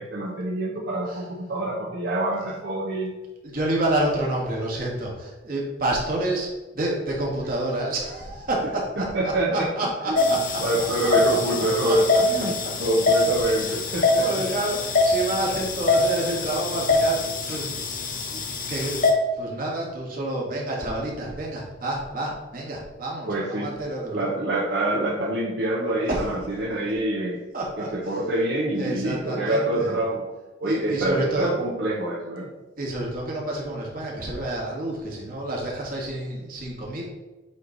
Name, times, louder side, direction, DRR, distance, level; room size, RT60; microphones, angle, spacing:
voice 1, 0.0-3.1 9.0-9.7 10.1-10.2 10.6-12.5 12.8-14.4 23.3-23.7 24.1-27.4 27.8-30.2 30.6-32.5, right 1 dB, 65° right, -5 dB, 0.9 m, -26 dB
voice 2, 3.4-10.6 11.0-11.4 11.8-12.0 12.4-12.7 13.1-13.2 13.6-17.9 18.3-24.3 26.1-26.3 26.7-26.8 27.5-28.2 28.7-30.0 30.6-31.5 32.8-37.0, right 1 dB, 50° right, -3 dB, 1.6 m, -29 dB
sound 1, 10.2-19.1, left 2 dB, 45° left, 0.8 m, -24 dB
8.4 x 3.1 x 3.9 m, 1.1 s
head